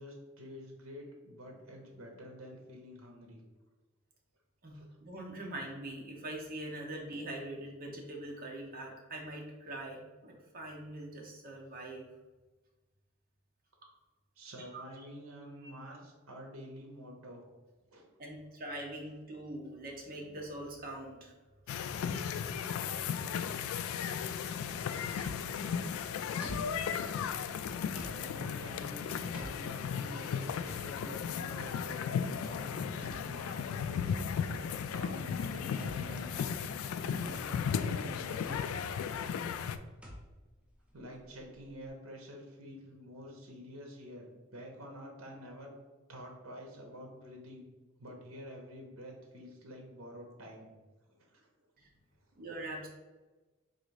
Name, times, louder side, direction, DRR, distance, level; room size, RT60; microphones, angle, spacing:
voice 1, 0.0-3.4 4.7-5.0 14.4-17.5 17.9-18.1 27.9-34.4 34.8-38.6 40.9-45.7 46.1-47.6 48.0-50.7 51.3-51.4, equal, 80° right, 1 dB, 0.9 m, -48 dB
voice 2, 4.6-12.1 14.7-14.8 18.2-21.3 51.8-51.9 52.4-52.9, right 1 dB, 45° right, -1 dB, 1.0 m, -43 dB
sound 1, 21.7-39.8, left 7 dB, 85° left, 0.3 m, -35 dB
sound 2, 25.2-41.9, equal, 5° right, 0.8 m, -52 dB
4.0 x 2.6 x 4.7 m, 1.2 s
head